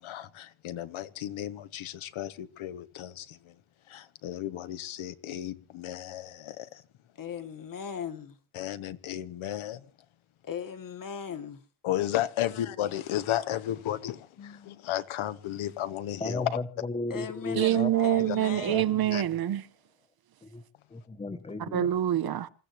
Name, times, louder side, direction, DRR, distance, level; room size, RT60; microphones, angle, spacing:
voice 1, 0.6-2.3 2.6-3.2 4.2-6.3 8.5-9.8 11.8-14.1 14.9-16.5 18.3-18.4 19.1-19.2, left 12 dB, 80° left, 1.2 m, -33 dB
voice 2, 7.2-8.4 10.4-11.6 14.4-14.8 17.1-19.0, left 7 dB, 45° left, 1.5 m, -39 dB
voice 3, 16.2-17.9 18.2-18.3 18.7-19.2 20.4-20.6 20.9-21.9, left 3 dB, 15° left, 1.2 m, -35 dB
voice 4, 17.5-19.7 21.6-22.5, right 12 dB, 50° right, 0.8 m, -26 dB
27.5 x 15.5 x 3.1 m
cardioid pair, 175°, 47 cm